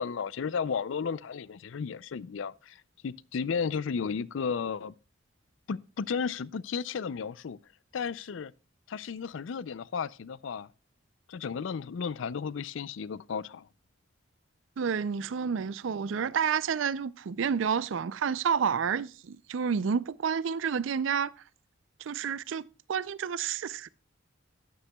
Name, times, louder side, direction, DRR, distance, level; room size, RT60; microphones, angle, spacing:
voice 1, 0.0-4.9 5.7-7.6 7.9-8.5 8.9-10.7 11.3-13.7, left 6 dB, 70° left, 0.4 m, -34 dB
voice 2, 14.8-21.3 22.0-23.9, right 6 dB, 75° right, 0.4 m, -30 dB
12.5 x 9.9 x 2.3 m
head